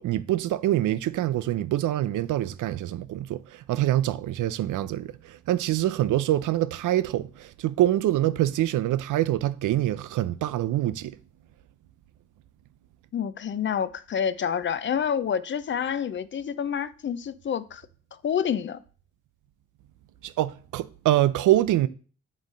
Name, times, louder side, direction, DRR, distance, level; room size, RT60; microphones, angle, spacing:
voice 1, 0.0-11.2 20.2-21.9, right 13 dB, 85° right, 0.5 m, -25 dB
voice 2, 13.1-17.8 18.2-18.8, left 8 dB, 40° left, 0.4 m, -28 dB
7.5 x 3.2 x 5.1 m
cardioid pair, 125°, 30 cm